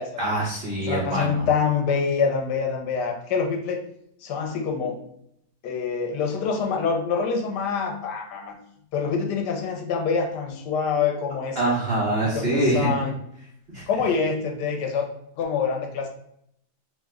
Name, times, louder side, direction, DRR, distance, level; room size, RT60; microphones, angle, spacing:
voice 1, 0.2-1.5 11.6-12.9 13.7-13.8, right 1 dB, 50° right, -5 dB, 0.8 m, -24 dB
voice 2, 0.8-3.8 4.2-5.0 5.6-8.6 8.9-11.7 12.2-13.1 13.9-15.1 15.4-16.1, left 5 dB, 85° left, 3 dB, 1.2 m, -26 dB
3.0 x 2.1 x 3.4 m, 0.73 s
omnidirectional pair, 1.8 m